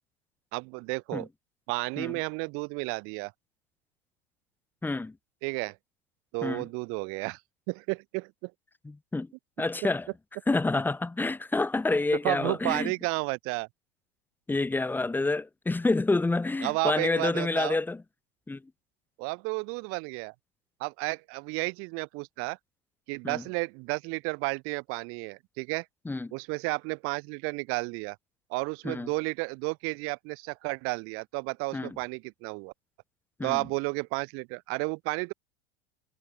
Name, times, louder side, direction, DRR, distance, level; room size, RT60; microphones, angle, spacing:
voice 1, 0.5-1.3 1.7-3.3 5.4-5.8 6.3-7.4 7.7-8.5 12.2-13.7 16.6-17.8 19.2-20.3 20.8-22.6 23.1-25.9 26.3-28.2 28.5-32.7 33.4-35.3, right 31 dB, 45° right, 0.7 m, -32 dB
voice 2, 4.8-5.2 6.4-6.7 8.8-9.3 9.6-10.1 10.5-12.9 14.5-18.0 18.5-18.6 23.2-23.4 26.1-26.3 28.8-29.1 31.7-32.0 33.4-33.7, left 3 dB, 5° left, 0.6 m, -28 dB
figure-of-eight pair, 80°, 31 cm